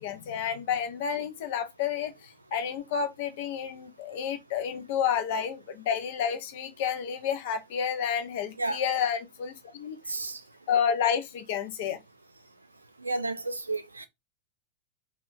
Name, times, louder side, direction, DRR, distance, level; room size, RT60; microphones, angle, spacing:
voice 1, 0.0-10.0 10.7-12.0, left 8 dB, 50° left, 0.6 m, -30 dB
voice 2, 10.1-10.4 13.0-14.1, right 2 dB, 80° right, 0.4 m, -32 dB
2.4 x 2.1 x 3.7 m
figure-of-eight pair, 90°, 0 cm